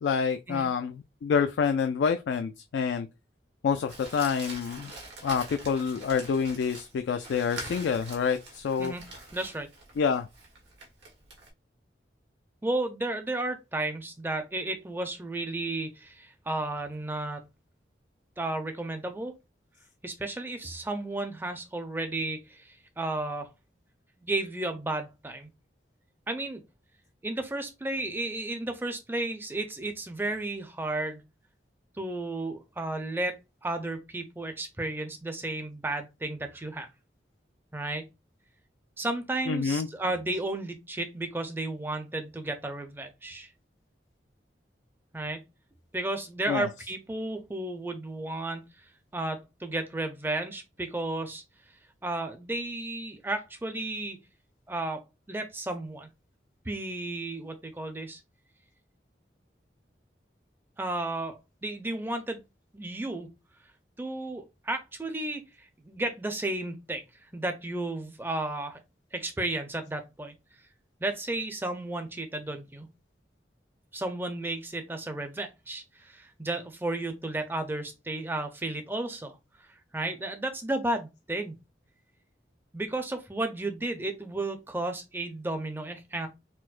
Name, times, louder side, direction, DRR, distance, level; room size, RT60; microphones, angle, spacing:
voice 1, 0.0-3.1 3.6-4.9 5.2-8.9 10.0-10.3 39.5-39.9 46.5-46.7, left 6 dB, 80° left, 0.3 m, -27 dB
Crumpling crinkling, 3.9-11.5, right 2 dB, 85° right, 1.3 m, -44 dB
voice 2, 9.3-9.7 12.6-17.5 18.4-19.3 20.0-23.5 24.2-25.5 26.3-26.6 27.2-31.3 32.0-36.9 37.7-38.1 39.0-43.5 45.1-45.4 45.9-48.6 49.1-51.4 52.0-54.2 54.7-56.1 56.6-58.2 60.8-62.4 62.7-63.3 64.0-67.0 67.3-68.8 69.1-70.4 71.0-72.9 73.9-79.7 79.9-81.6 82.7-86.3, right 2 dB, 10° right, 0.4 m, -33 dB
4.4 x 2.1 x 2.4 m
head